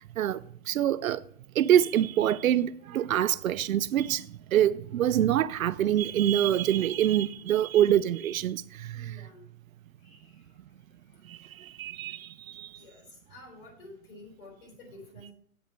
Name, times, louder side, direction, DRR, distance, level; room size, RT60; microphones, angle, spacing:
voice 1, 0.7-1.2 1.6-4.2 4.5-8.6 9.0-9.1 11.8-12.2, right 11 dB, 85° right, 0.6 m, -25 dB
voice 2, 8.9-9.4 10.0-10.6 11.1-11.2 12.7-15.3, left 2 dB, 45° left, 4.0 m, -51 dB
8.0 x 5.2 x 5.7 m
hypercardioid pair, 155°, 40 cm